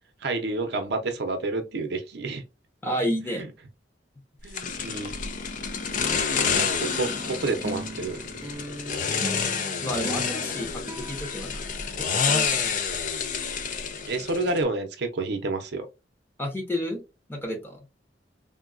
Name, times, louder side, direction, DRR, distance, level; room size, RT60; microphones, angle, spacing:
voice 1, 0.2-2.4 3.3-3.5 4.4-5.2 6.5-8.2 9.0-9.2 14.1-15.9, right 3 dB, 65° right, 0.6 m, -29 dB
voice 2, 2.8-3.4 9.8-11.7 12.0-12.8 16.4-17.0 17.3-17.8, equal, 15° left, 0.9 m, -31 dB
sound 1, 4.5-14.6, left 6 dB, 45° left, 0.4 m, -29 dB
sound 2, 6.8-12.4, right 1 dB, 15° right, 0.3 m, -39 dB
3.7 x 2.2 x 2.4 m
head